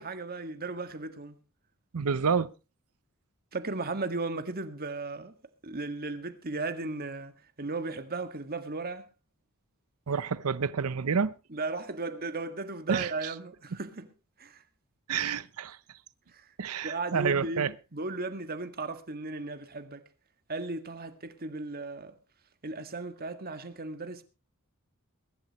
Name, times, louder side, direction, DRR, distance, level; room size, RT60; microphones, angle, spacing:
voice 1, 0.0-1.4 3.5-5.3 5.6-9.1 11.5-14.1 14.4-14.6 16.3-16.5 16.8-20.0 20.5-22.1 22.6-24.2, right 3 dB, 45° right, 1.8 m, -36 dB
voice 2, 1.9-2.5 10.1-11.3 12.9-13.3 15.1-15.8 16.6-17.7, right 6 dB, 80° right, 0.6 m, -29 dB
23.0 x 12.0 x 3.0 m
head